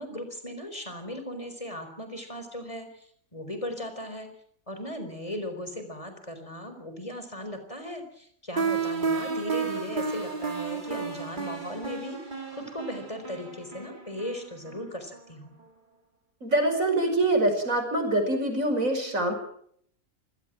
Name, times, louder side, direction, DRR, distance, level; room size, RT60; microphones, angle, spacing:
voice 1, 0.0-4.3 4.7-15.5, left 1 dB, 25° left, 7 dB, 4.3 m, -37 dB
sound 1, 8.6-15.3, right 5 dB, 35° right, 3.0 m, -32 dB
voice 2, 16.4-19.3, right 1 dB, 70° right, 6 dB, 5.9 m, -24 dB
27.0 x 17.5 x 7.6 m, 0.65 s
omnidirectional pair, 1.4 m